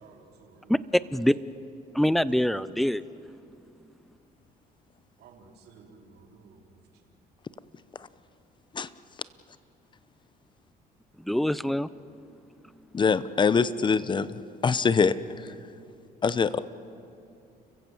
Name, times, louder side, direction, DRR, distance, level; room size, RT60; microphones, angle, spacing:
voice 1, 0.0-0.8 1.0-1.1 5.2-6.8, right 4 dB, 70° right, 1 dB, 3.3 m, -54 dB
voice 2, 0.7-1.3 1.9-3.0 11.2-11.9, equal, ahead, 17 dB, 0.6 m, -24 dB
voice 3, 12.9-14.3 14.6-15.1 16.2-16.6, left 5 dB, 30° left, 16 dB, 0.8 m, -23 dB
30.0 x 15.5 x 7.9 m, 2.7 s
cardioid pair, 110°, 17 cm